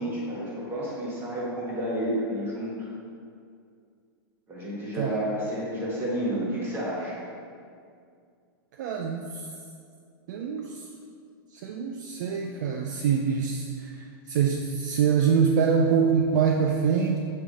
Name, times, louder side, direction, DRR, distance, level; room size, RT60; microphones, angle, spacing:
voice 1, 0.0-2.9 4.5-7.2, equal, 15° right, -5 dB, 1.3 m, -30 dB
voice 2, 4.9-5.2 8.8-9.5 10.3-10.9 11.5-17.2, right 6 dB, 50° right, 2 dB, 0.4 m, -25 dB
6.5 x 3.1 x 4.9 m, 2.3 s
supercardioid pair, 160°, 12 cm